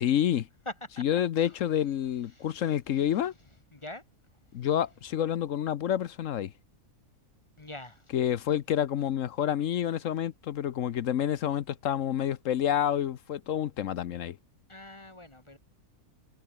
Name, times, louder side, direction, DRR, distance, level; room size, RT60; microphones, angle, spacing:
voice 1, 0.0-0.5 1.0-3.3 4.5-6.5 8.1-14.4, left 10 dB, 65° left, 1.0 m, -28 dB
voice 2, 0.7-1.0 1.4-1.6 2.3-3.2 3.7-4.0 4.6-4.7 7.6-8.1 14.7-15.6, left 1 dB, 20° left, 1.7 m, -44 dB
omnidirectional pair, 1.6 m